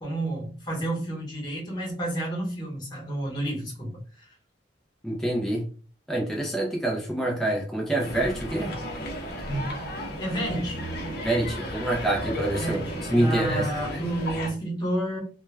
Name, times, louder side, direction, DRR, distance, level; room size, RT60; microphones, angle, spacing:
voice 1, 0.0-4.3 10.2-10.8 12.6-15.2, right 1 dB, 20° left, -3 dB, 1.0 m, -30 dB
voice 2, 5.0-5.7 6.1-8.8 11.2-12.8 13.1-13.7 13.9-14.0, right 1 dB, ahead, -1 dB, 0.4 m, -26 dB
sound 1, 8.0-14.5, equal, 55° left, 0.6 m, -33 dB
2.2 x 2.1 x 3.2 m, 0.40 s
head